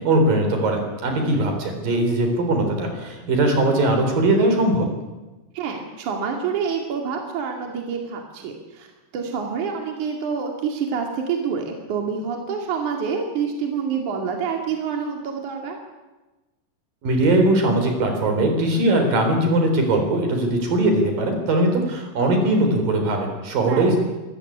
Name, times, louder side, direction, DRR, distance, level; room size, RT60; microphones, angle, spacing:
voice 1, 0.0-4.9 17.0-24.0, right 1 dB, 85° right, 4 dB, 5.7 m, -20 dB
voice 2, 1.1-1.5 5.5-8.9 9.1-15.8 23.7-24.0, right 6 dB, 65° right, 2 dB, 3.8 m, -27 dB
24.5 x 14.5 x 10.0 m, 1.1 s
omnidirectional pair, 3.9 m